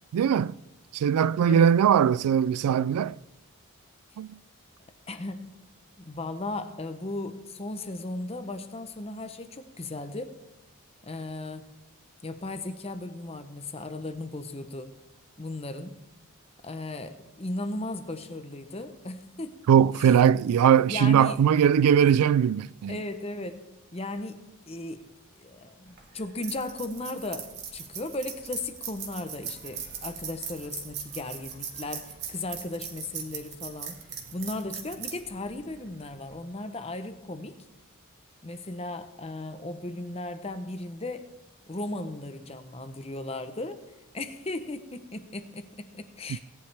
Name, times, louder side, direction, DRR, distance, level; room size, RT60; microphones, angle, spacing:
voice 1, 0.1-0.5 0.9-3.1 4.2-4.4 19.7-23.0, right 8 dB, 85° right, 0.3 m, -20 dB
voice 2, 1.4-1.7 5.1-5.5 6.0-10.3 11.0-11.7 12.2-14.9 15.4-16.0 16.6-19.6 20.0-20.2 20.9-21.4 22.9-23.6 23.9-25.0 25.4-34.0 34.3-37.6 38.4-41.3 41.7-43.8 44.1-46.4, left 2 dB, 25° left, 0.7 m, -36 dB
sound 1, 25.9-36.3, right 7 dB, 50° right, 1.8 m, -40 dB
18.0 x 10.5 x 3.4 m
head